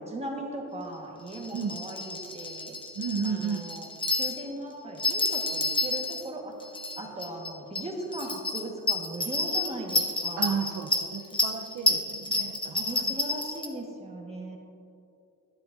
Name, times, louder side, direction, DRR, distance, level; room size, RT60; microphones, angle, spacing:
voice 1, 0.0-2.8 3.2-3.9 4.1-6.5 7.0-10.6 12.7-14.6, right 1 dB, 20° right, 0 dB, 1.3 m, -38 dB
sound 1, 1.3-4.5 5.0-6.3 6.6-7.5 7.7-7.8 8.1-13.7, left 2 dB, 15° left, 0.9 m, -29 dB
voice 2, 3.0-3.7 10.4-13.2, right 6 dB, 65° right, 4 dB, 0.7 m, -33 dB
12.5 x 10.5 x 2.6 m, 2.7 s
wide cardioid pair, 145°, 31 cm